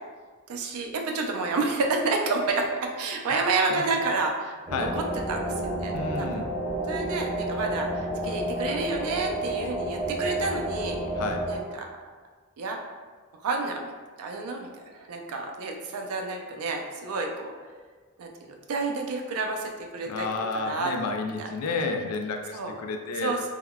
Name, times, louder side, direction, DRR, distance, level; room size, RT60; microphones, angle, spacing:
voice 1, 0.5-6.5 6.9-11.0 11.5-11.9 12.6-12.8 13.4-13.9 14.2-17.5 18.2-20.3 20.5-20.9 21.4-21.5 22.5-22.8 23.2-23.5, right 3 dB, 75° right, 2 dB, 0.4 m, -30 dB
sound 1, 4.7-11.6, right 1 dB, 25° right, 0.7 m, -30 dB
voice 2, 5.9-6.5 11.2-11.4 20.1-23.5, left 3 dB, 80° left, 5 dB, 0.3 m, -31 dB
3.6 x 2.2 x 2.3 m, 1.4 s
head